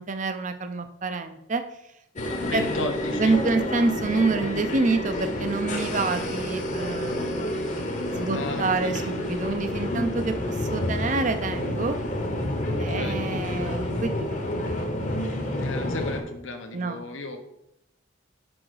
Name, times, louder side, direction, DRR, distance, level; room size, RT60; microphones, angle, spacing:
voice 1, 0.0-1.6 2.5-2.7 3.1-7.6 8.1-12.0 12.8-14.7 15.0-15.1 15.4-15.5 16.7-17.0, right 3 dB, 40° right, 9 dB, 0.5 m, -27 dB
sound 1, 2.2-16.2, left 1 dB, 40° left, 0.9 m, -29 dB
voice 2, 2.3-3.4 8.3-9.1 12.7-13.2 15.5-17.4, left 2 dB, 75° left, 6 dB, 0.9 m, -34 dB
6.2 x 4.9 x 4.8 m, 0.84 s
head